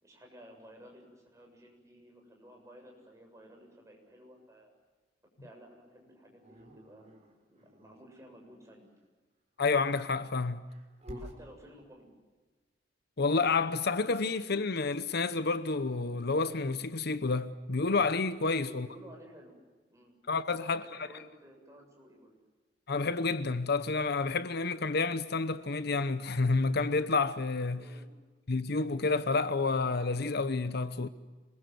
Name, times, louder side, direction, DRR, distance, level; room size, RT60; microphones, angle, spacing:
voice 1, 0.0-4.7 5.4-7.2 7.5-8.9 11.1-12.1 18.5-20.1 20.4-22.3 27.7-28.1, equal, 15° right, 7.2 m, -54 dB
Dog, 6.4-8.0 9.6-11.4, equal, 40° right, 4.1 m, -49 dB
voice 2, 9.6-10.6 13.2-18.9 20.3-20.8 22.9-27.8 28.5-31.1, left 4 dB, 60° left, 0.9 m, -29 dB
27.5 x 21.5 x 7.8 m
head